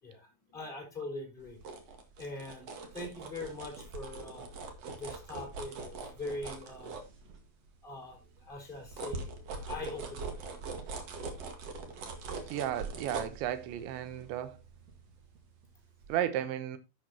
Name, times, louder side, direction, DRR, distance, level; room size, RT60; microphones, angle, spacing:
voice 1, 0.0-1.6 2.2-4.5 5.0-7.0 7.8-10.4, left 2 dB, 10° left, 3.9 m, -42 dB
sound 1, 1.4-7.7 8.1-15.6 16.0-16.2, right 4 dB, 55° right, 1.8 m, -43 dB
voice 2, 12.5-14.6 16.1-16.8, right 11 dB, 75° right, 3.1 m, -34 dB
11.0 x 8.2 x 2.9 m
omnidirectional pair, 5.5 m